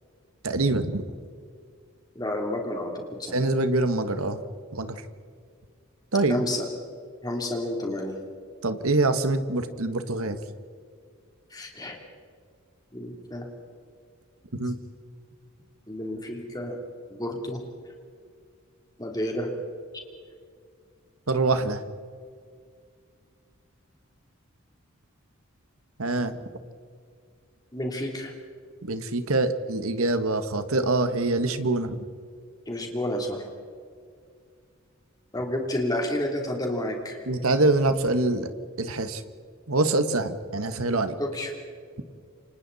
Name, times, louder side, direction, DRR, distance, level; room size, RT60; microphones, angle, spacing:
voice 1, 0.4-1.0 3.3-4.4 4.7-5.0 6.1-6.4 8.6-10.4 14.5-14.8 21.3-21.8 26.0-26.3 28.8-32.0 37.3-38.5 38.8-39.2 39.7-41.1, right 2 dB, 90° right, 10 dB, 1.5 m, -25 dB
voice 2, 2.2-3.3 6.3-6.6 7.2-8.1 11.5-12.0 12.9-13.5 15.9-16.8 17.1-17.6 19.0-19.5 27.7-28.3 32.7-33.4 35.3-37.2 41.2-41.5, left 1 dB, 20° left, 1 dB, 3.4 m, -30 dB
29.0 x 25.5 x 4.2 m, 2.2 s
head